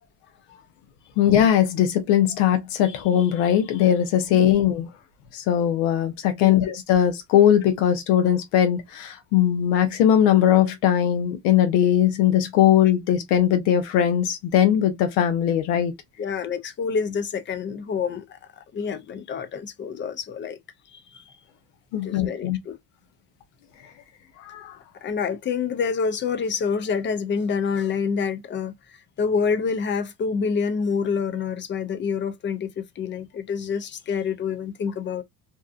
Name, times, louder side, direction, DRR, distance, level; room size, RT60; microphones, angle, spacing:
voice 1, 1.2-4.9 5.3-15.9 21.9-22.6 24.4-24.7, left 10 dB, 85° left, 0.7 m, -20 dB
voice 2, 16.2-20.6 20.9-21.2 22.0-22.8 25.0-35.2, left 6 dB, 30° left, 0.4 m, -27 dB
2.7 x 2.3 x 2.4 m
supercardioid pair, 105°, 41 cm